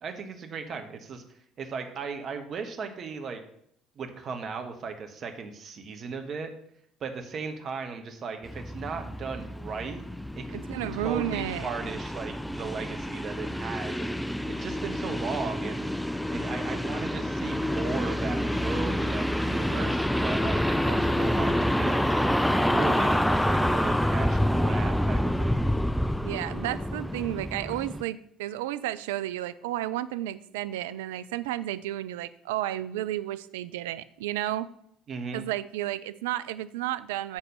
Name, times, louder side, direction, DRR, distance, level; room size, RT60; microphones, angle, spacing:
voice 1, 0.0-1.2 1.6-3.4 4.0-6.5 7.0-10.0 10.4-10.6 10.9-15.9 16.3-25.6 35.1-35.4, right 5 dB, 45° right, 6 dB, 1.2 m, -36 dB
sound 1, 8.4-28.0, equal, 5° left, 0.4 m, -27 dB
voice 2, 10.5-11.7 26.2-34.7 35.3-37.4, right 14 dB, 75° right, 14 dB, 0.3 m, -32 dB
7.2 x 4.2 x 6.5 m, 0.69 s
hypercardioid pair, 55°, 0 cm